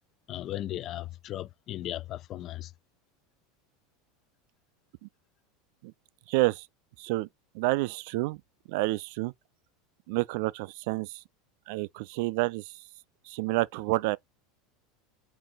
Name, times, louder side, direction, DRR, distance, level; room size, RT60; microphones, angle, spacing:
voice 1, 0.3-2.7, left 13 dB, 40° left, 0.3 m, -36 dB
voice 2, 6.3-6.6 7.0-7.3 7.5-8.4 8.7-9.3 10.1-11.2 11.7-12.6 13.3-14.2, right 22 dB, 55° right, 0.3 m, -29 dB
5.1 x 2.5 x 3.6 m
figure-of-eight pair, 80°, 0 cm